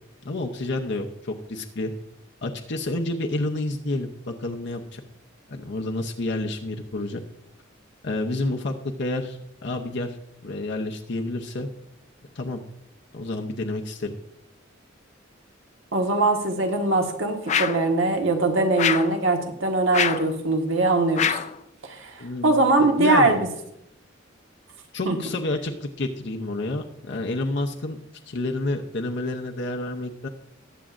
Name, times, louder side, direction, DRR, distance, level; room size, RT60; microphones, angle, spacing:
voice 1, 0.2-1.9 2.4-5.0 5.5-7.2 8.0-10.2 10.4-11.7 12.3-12.6 13.1-14.1 22.2-23.3 24.9-28.0 28.3-30.3, left 2 dB, 60° left, 2 dB, 0.8 m, -29 dB
voice 2, 15.9-21.4 21.8-23.5 25.0-25.2, right 2 dB, 80° right, 3 dB, 1.5 m, -22 dB
sound 1, 17.5-17.9 18.8-19.2 19.9-20.3 21.2-21.6, left 8 dB, 35° left, 0.4 m, -24 dB
19.5 x 7.5 x 2.5 m, 0.80 s
head